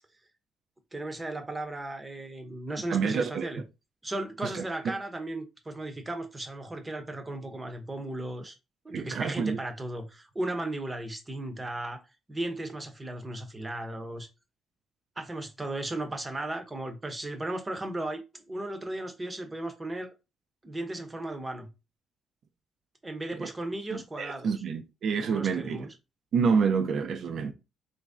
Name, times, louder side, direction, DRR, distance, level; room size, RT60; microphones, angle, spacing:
voice 1, 0.9-3.6 4.0-8.5 8.8-12.0 12.3-14.3 15.2-20.1 20.6-21.7 23.0-24.5 25.2-25.9, right 1 dB, 20° right, 0.8 m, -36 dB
voice 2, 2.9-3.5 4.4-4.6 8.9-9.6 23.4-23.5 23.9-25.9 26.3-27.5, right 6 dB, 65° right, 0.5 m, -28 dB
3.1 x 2.6 x 3.5 m
cardioid pair, 90°, 0 cm